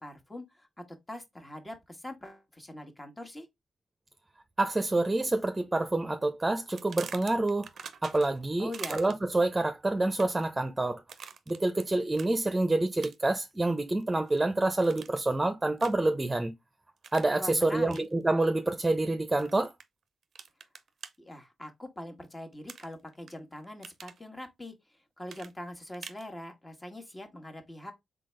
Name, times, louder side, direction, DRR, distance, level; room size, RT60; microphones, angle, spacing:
voice 1, 0.0-0.7 1.1-3.5 8.6-9.0 17.4-18.0 21.2-24.7 25.2-27.9, left 1 dB, 25° left, 1.6 m, -43 dB
voice 2, 4.6-7.7 8.0-11.0 11.5-16.5 17.1-19.7, right 2 dB, 20° right, 0.8 m, -27 dB
sound 1, 6.8-8.4 8.7-9.4 10.0-10.5 11.1-11.8 12.1-12.3 13.0-13.4 13.8-14.4 14.8-15.3 15.8-16.1 17.0-17.3 17.9-18.1 19.4-19.8 20.3-21.1 22.7-23.3 23.6-24.2 25.3-26.3, right 6 dB, 70° right, 0.6 m, -44 dB
3.9 x 3.6 x 3.2 m
supercardioid pair, 45°, 0 cm